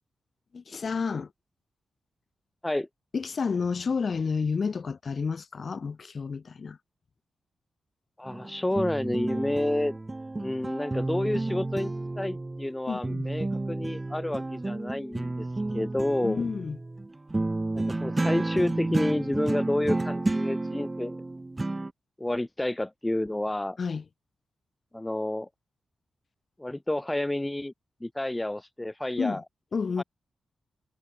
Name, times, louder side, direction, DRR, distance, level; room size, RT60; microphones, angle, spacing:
voice 1, 0.5-1.3 3.1-6.8 12.9-13.3 16.2-16.8 23.8-24.0 29.2-29.4 29.7-30.0, left 5 dB, 45° left, 1.8 m, -30 dB
voice 2, 8.2-9.9 10.4-15.5 15.7-16.4 17.7-21.2 22.2-23.8 24.9-25.5 26.6-27.7 28.0-29.4 30.0-30.1, left 1 dB, 10° left, 0.9 m, -30 dB
sound 1, 8.3-12.8 13.0-21.9, right 2 dB, 20° right, 2.1 m, -31 dB
wide cardioid pair, 115°, 0 cm